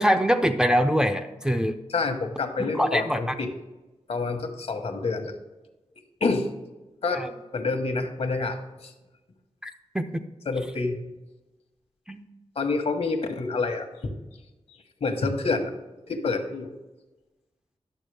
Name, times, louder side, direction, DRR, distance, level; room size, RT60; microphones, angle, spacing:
voice 1, 0.0-1.8 2.6-3.2 7.1-7.3 9.6-10.0 12.1-12.2, equal, 5° right, 5 dB, 0.5 m, -23 dB
voice 2, 1.9-3.5 4.1-5.3 6.2-6.5 7.0-7.2 7.5-8.9 10.4-11.0 12.5-14.1 15.0-15.7 16.1-16.7, left 3 dB, 65° left, 5 dB, 1.1 m, -27 dB
11.0 x 7.2 x 3.3 m, 1.1 s
wide cardioid pair, 130°, 11 cm